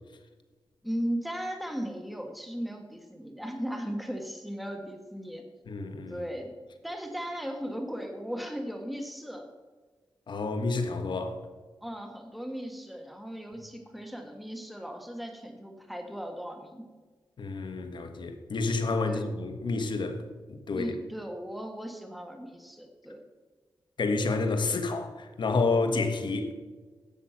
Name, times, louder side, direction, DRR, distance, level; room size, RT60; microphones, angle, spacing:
voice 1, 0.8-5.4 6.1-6.5 6.8-9.4 11.8-16.8 19.0-19.2 20.7-23.2, equal, ahead, 1.5 m, -37 dB
voice 2, 5.7-6.2 10.3-11.4 17.4-20.2 20.5-20.9 24.0-26.5, left 3 dB, 65° left, 1.3 m, -29 dB
11.0 x 7.5 x 5.8 m
cardioid pair, 80°, 8 cm